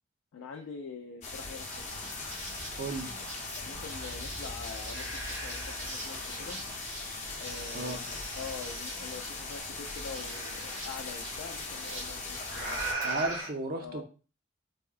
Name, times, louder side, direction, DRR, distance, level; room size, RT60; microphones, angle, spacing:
voice 1, 0.3-1.9 3.6-6.6 7.4-12.9 13.8-14.0, left 5 dB, 80° left, 3 dB, 0.3 m, -44 dB
sound 1, 1.2-12.9, left 3 dB, 35° left, 0.5 m, -40 dB
Liquid, 1.6-13.5, right 2 dB, 85° right, 1.2 m, -46 dB
voice 2, 2.8-3.1 7.7-8.1 13.0-14.0, right 2 dB, 45° right, 4 dB, 0.5 m, -34 dB
sound 2, 3.3-3.4 3.7-6.1 6.8-9.2 10.1-11.6 12.4-13.5, right 2 dB, 65° right, 0.9 m, -40 dB
3.5 x 2.1 x 2.4 m, 0.35 s
head